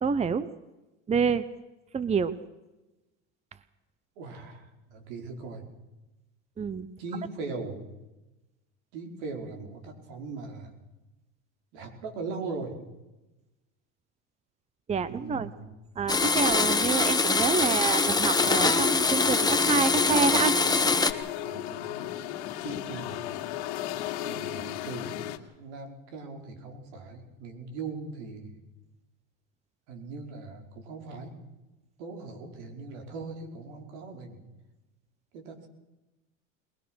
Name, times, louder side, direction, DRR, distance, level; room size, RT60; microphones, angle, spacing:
voice 1, 0.0-0.5 1.1-1.4 1.9-2.3 6.6-6.9 14.9-15.5 16.0-20.5, right 5 dB, 20° right, 15 dB, 0.9 m, -27 dB
voice 2, 4.2-5.6 7.0-7.8 8.9-10.7 11.7-12.8 15.1-15.7 17.6-17.9 21.4-22.1 22.6-23.4 24.2-25.1 25.6-28.5 29.9-31.4 32.0-34.4 35.3-35.7, right 4 dB, 75° right, 4 dB, 5.2 m, -40 dB
Domestic sounds home sounds, 16.1-21.1, left 4 dB, 10° left, 1.5 m, -24 dB
sound 1, 18.4-25.4, left 12 dB, 75° left, 2.0 m, -35 dB
22.0 x 20.5 x 6.4 m, 1.0 s
supercardioid pair, 105°, 34 cm